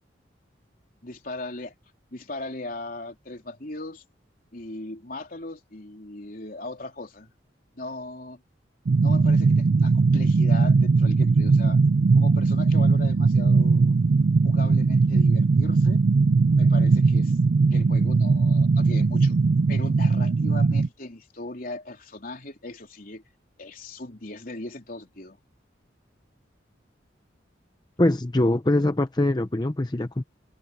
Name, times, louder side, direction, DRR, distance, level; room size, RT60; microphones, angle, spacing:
voice 1, 1.0-1.7 2.1-4.0 4.5-7.3 7.7-8.4 9.0-11.8 12.1-14.0 14.4-16.0 16.6-17.4 17.7-19.4 19.7-23.2 23.6-25.4, left 2 dB, 50° left, 3.7 m, -38 dB
sound 1, 8.9-20.9, right 4 dB, 55° right, 0.4 m, -19 dB
voice 2, 28.0-30.2, left 1 dB, 25° left, 0.6 m, -23 dB
head